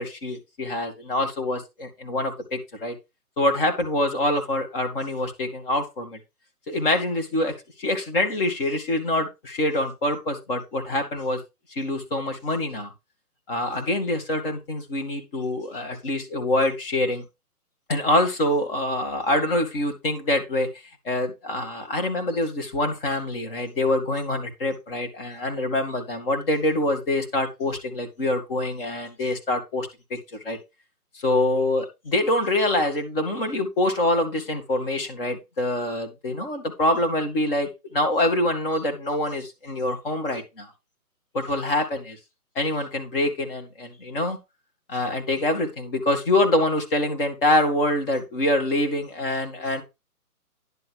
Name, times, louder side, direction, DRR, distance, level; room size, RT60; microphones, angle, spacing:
voice 1, 0.0-3.0 3.4-6.2 6.7-11.4 11.7-12.9 13.5-17.2 17.9-20.7 21.0-30.2 30.4-30.6 31.1-40.7 41.3-42.2 42.6-44.4 44.9-49.8, left 1 dB, 35° left, 4 dB, 2.7 m, -25 dB
10.5 x 4.1 x 6.5 m, 0.24 s
figure-of-eight pair, 145°, 46 cm